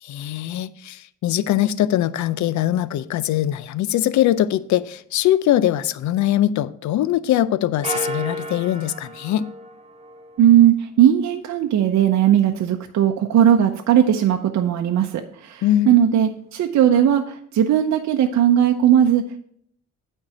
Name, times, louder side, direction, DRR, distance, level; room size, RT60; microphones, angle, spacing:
voice 1, 0.0-9.5 15.6-15.9, left 12 dB, 70° left, 0.5 m, -21 dB
sound 1, 7.8-10.5, right 1 dB, 20° right, 0.9 m, -32 dB
voice 2, 10.4-19.4, right 10 dB, 65° right, 0.7 m, -18 dB
8.8 x 4.6 x 5.8 m
cardioid pair, 90°, 30 cm